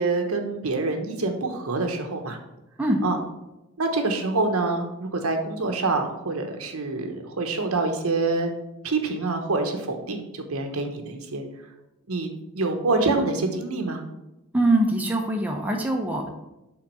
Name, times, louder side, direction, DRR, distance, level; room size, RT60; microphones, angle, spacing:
voice 1, 0.0-2.4 3.0-3.2 3.8-8.5 8.8-11.5 12.1-12.3 12.5-14.0, right 3 dB, 75° right, 4 dB, 0.9 m, -26 dB
voice 2, 14.5-16.3, right 1 dB, 5° right, 0 dB, 0.7 m, -23 dB
5.9 x 4.0 x 5.4 m, 0.95 s
head